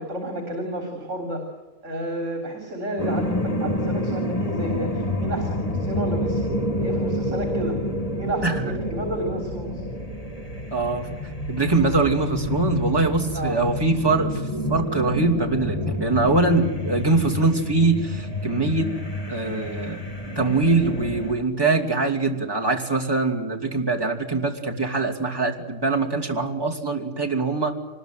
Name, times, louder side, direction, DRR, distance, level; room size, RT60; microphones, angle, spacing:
voice 1, 0.0-1.4 1.8-6.5 6.8-7.8 8.1-9.8 13.3-13.6, right 1 dB, 75° right, 3 dB, 3.8 m, -31 dB
sound 1, 3.0-21.3, left 1 dB, 30° left, 2.2 m, -28 dB
voice 2, 8.4-8.7 10.7-11.2 11.5-14.4 14.7-18.9 19.3-20.0 20.4-27.8, right 3 dB, 20° right, 0 dB, 2.7 m, -23 dB
24.5 x 20.5 x 9.2 m, 1.2 s
omnidirectional pair, 1.3 m